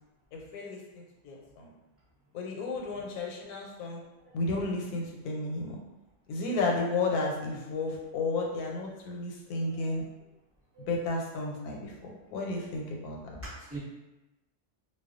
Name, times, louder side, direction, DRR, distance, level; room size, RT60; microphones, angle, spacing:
voice 1, 0.3-1.7 2.3-4.0 4.3-5.8 6.3-10.0 10.8-13.4, left 3 dB, 85° left, 0 dB, 1.1 m, -33 dB
voice 2, 9.4-10.0 10.7-10.9 13.3-13.8, right 2 dB, 10° right, -11 dB, 0.7 m, -44 dB
2.3 x 2.2 x 2.4 m, 1.0 s
omnidirectional pair, 1.6 m